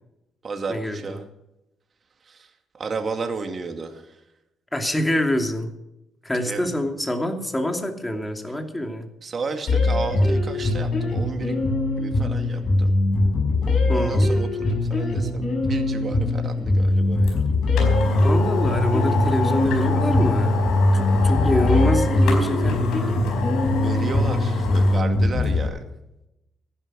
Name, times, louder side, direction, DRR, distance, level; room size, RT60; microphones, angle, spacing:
voice 1, 0.4-1.3 2.2-4.2 6.3-6.8 9.2-11.6 12.0-12.9 13.7-17.5 23.7-25.8, right 4 dB, 45° right, 5 dB, 2.2 m, -33 dB
voice 2, 4.7-5.7 6.2-9.1 13.9-14.3 18.2-20.6 20.9-23.3, equal, 10° left, 5 dB, 2.7 m, -26 dB
sound 1, 9.7-25.7, left 2 dB, 55° left, 7.0 m, -22 dB
sound 2, 17.3-17.4 17.8-25.0 25.4-25.5, left 2 dB, 85° left, 4.5 m, -24 dB
15.5 x 11.0 x 6.2 m, 0.89 s
cardioid pair, 90°, 0 cm